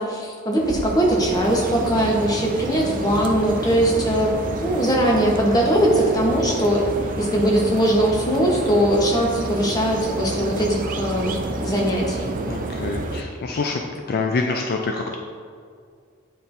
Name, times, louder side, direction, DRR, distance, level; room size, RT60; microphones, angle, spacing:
voice 1, 0.0-4.3 4.6-6.9 7.2-12.3, right 1 dB, 20° left, -2 dB, 1.0 m, -20 dB
sound 1, 0.6-13.2, right 2 dB, 40° right, 0.5 m, -29 dB
voice 2, 12.5-13.8 14.1-15.1, left 3 dB, 50° left, 2 dB, 0.4 m, -26 dB
9.3 x 4.2 x 2.6 m, 2.1 s
head